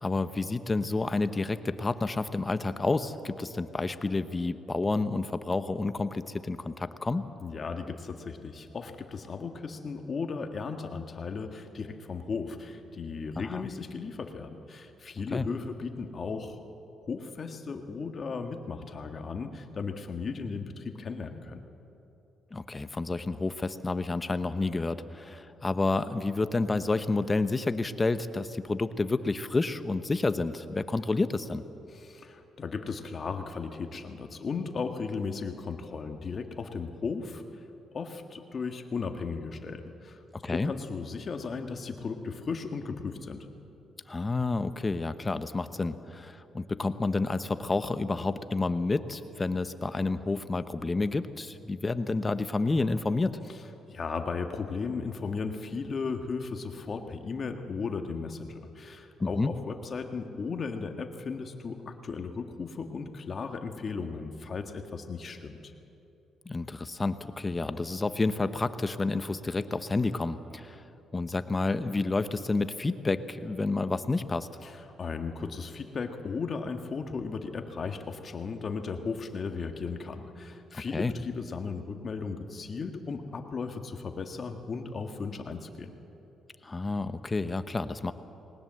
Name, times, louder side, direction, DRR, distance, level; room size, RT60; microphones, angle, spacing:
voice 1, 0.0-7.3 13.4-13.7 15.3-15.5 22.5-31.6 40.4-40.7 44.1-53.4 59.2-59.5 66.4-70.8 71.1-74.5 80.7-81.1 86.6-88.1, left 3 dB, 25° left, 11 dB, 0.9 m, -29 dB
voice 2, 7.4-16.6 17.1-21.6 31.9-37.4 37.9-40.2 40.5-43.5 53.9-65.7 74.6-85.9, left 4 dB, 45° left, 5 dB, 1.7 m, -36 dB
20.0 x 19.0 x 7.7 m, 2.9 s
cardioid pair, 90°, 0 cm